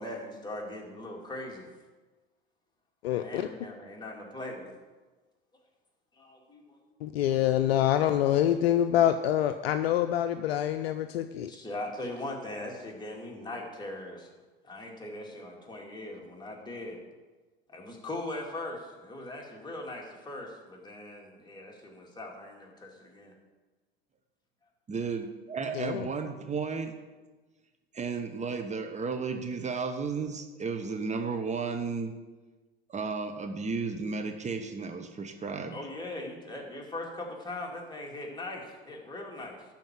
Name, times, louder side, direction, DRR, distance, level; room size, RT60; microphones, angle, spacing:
voice 1, 0.0-1.7 3.1-4.7 6.1-6.8 11.5-14.3 14.6-17.0 17.7-23.3 35.7-39.6, left 1 dB, 15° left, -1 dB, 2.5 m, -40 dB
voice 2, 3.0-3.5 7.0-11.5 25.7-26.1, left 11 dB, 75° left, 8 dB, 0.5 m, -26 dB
voice 3, 24.9-26.9 27.9-32.1 32.9-35.8, right 5 dB, 20° right, 6 dB, 1.0 m, -33 dB
12.0 x 4.5 x 7.5 m, 1.3 s
hypercardioid pair, 85°, 31 cm